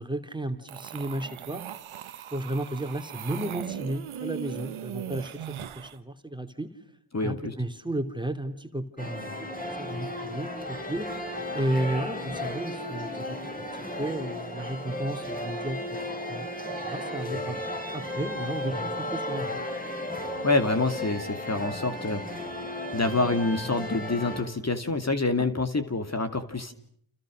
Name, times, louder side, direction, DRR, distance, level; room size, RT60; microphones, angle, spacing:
voice 1, 0.0-1.6 2.3-6.7 7.2-11.2 11.5-13.4 13.7-16.0 16.3-16.5 16.8-17.6 17.9-19.6 25.4-25.5, right 1 dB, 10° right, 7 dB, 3.0 m, -33 dB
sound 1, 0.7-6.0, right 10 dB, 80° right, 1.4 m, -38 dB
voice 2, 7.1-7.5 20.4-22.4 22.9-26.7, left 3 dB, 30° left, 8 dB, 2.7 m, -27 dB
sound 2, 9.0-24.4, left 1 dB, 15° left, 7.6 m, -34 dB
29.5 x 29.0 x 6.5 m, 0.64 s
cardioid pair, 55°, 48 cm